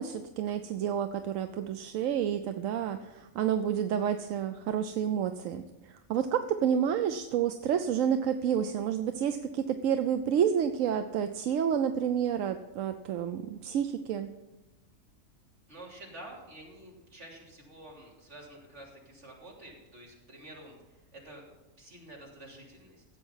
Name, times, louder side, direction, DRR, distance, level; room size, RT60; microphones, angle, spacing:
voice 1, 0.0-14.3, right 8 dB, 90° right, 9 dB, 1.0 m, -29 dB
voice 2, 2.6-3.0 15.7-21.4 21.8-23.0, right 1 dB, 65° right, -3 dB, 3.7 m, -49 dB
16.0 x 8.2 x 5.6 m, 1.1 s
omnidirectional pair, 1.3 m